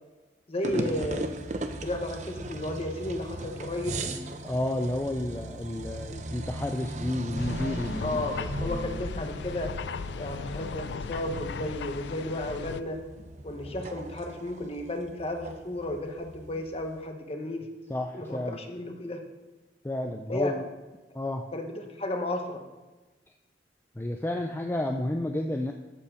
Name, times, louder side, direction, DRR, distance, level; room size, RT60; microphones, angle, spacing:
voice 1, 0.5-1.3 1.8-4.2 8.0-9.7 10.2-13.0 13.4-17.7 18.1-19.2 20.3-20.6 21.5-22.6, left 1 dB, 35° left, 4 dB, 1.1 m, -33 dB
sound 1, 0.6-17.0, right 2 dB, 45° right, 0.7 m, -38 dB
voice 2, 4.4-9.0 17.9-18.6 19.8-20.6 21.1-21.5 24.0-25.7, left 1 dB, 15° left, 3 dB, 0.4 m, -31 dB
sound 2, 7.4-12.8, left 5 dB, 85° left, 0.4 m, -37 dB
13.0 x 5.6 x 4.9 m, 1.2 s
head